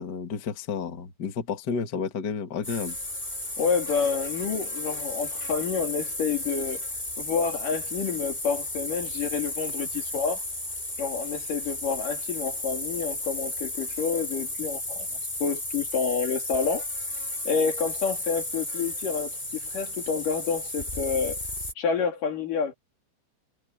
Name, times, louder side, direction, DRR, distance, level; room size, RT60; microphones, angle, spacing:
voice 1, 0.0-3.0, left 6 dB, 40° left, 1.7 m, -31 dB
sound 1, 2.6-21.7, left 2 dB, 15° left, 4.3 m, -34 dB
voice 2, 3.6-6.8 7.2-10.4 11.0-16.8 17.5-21.4 21.8-22.7, left 5 dB, 60° left, 4.3 m, -29 dB
omnidirectional pair, 4.3 m